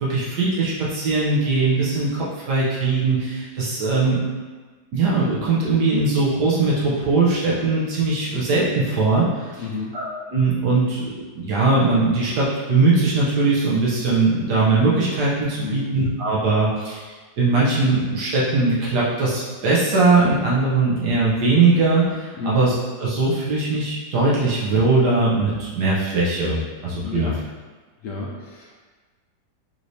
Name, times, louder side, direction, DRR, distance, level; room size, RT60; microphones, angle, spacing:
voice 1, 0.0-4.2 4.9-9.6 9.9-17.1 17.4-22.7 23.0-27.3, right 3 dB, 75° right, -7 dB, 1.4 m, -20 dB
voice 2, 9.6-10.0 15.6-15.9 22.3-22.7 27.0-27.4 28.0-28.8, left 4 dB, 70° left, -3 dB, 0.8 m, -31 dB
5.5 x 3.2 x 2.7 m, 1.4 s
omnidirectional pair, 1.8 m